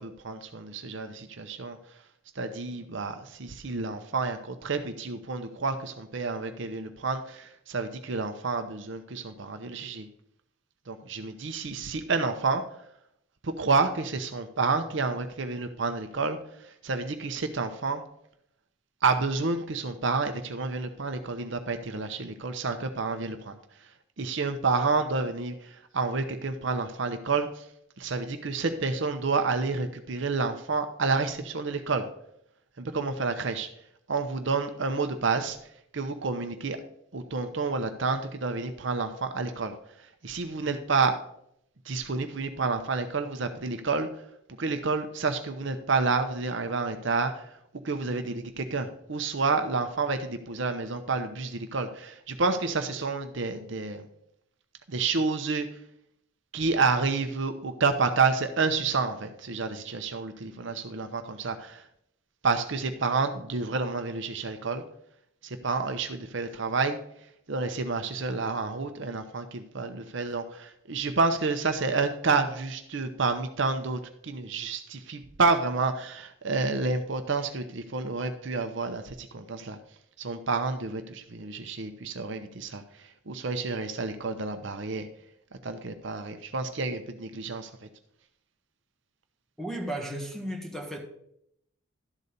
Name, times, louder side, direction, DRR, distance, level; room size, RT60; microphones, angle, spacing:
voice 1, 0.0-1.8 2.4-10.1 10.9-12.6 13.4-18.0 19.0-23.5 24.2-27.7 28.0-32.1 32.8-33.7 34.1-35.6 35.9-36.8 37.1-39.7 40.2-41.2 41.9-44.1 44.6-47.5 47.8-54.0 54.9-55.7 56.5-61.8 62.4-64.8 65.4-67.0 67.5-79.8 80.2-85.1 85.6-87.7, right 4 dB, 60° right, 0.7 m, -29 dB
voice 2, 89.6-91.0, right 1 dB, ahead, 1.5 m, -34 dB
12.0 x 4.1 x 6.6 m
head